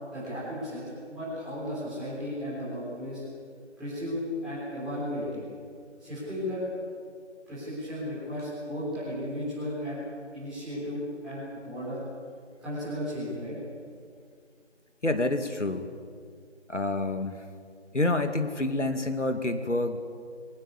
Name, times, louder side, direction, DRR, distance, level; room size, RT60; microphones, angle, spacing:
voice 1, 0.1-3.2 3.8-5.4 6.0-6.6 7.5-10.0 10.3-12.0 12.6-13.6, equal, ahead, -12 dB, 3.6 m, -35 dB
voice 2, 15.0-15.9 16.7-17.4 17.9-20.0, left 2 dB, 85° left, 8 dB, 2.3 m, -28 dB
23.0 x 19.0 x 8.4 m, 2.1 s
figure-of-eight pair, 165°, 35 cm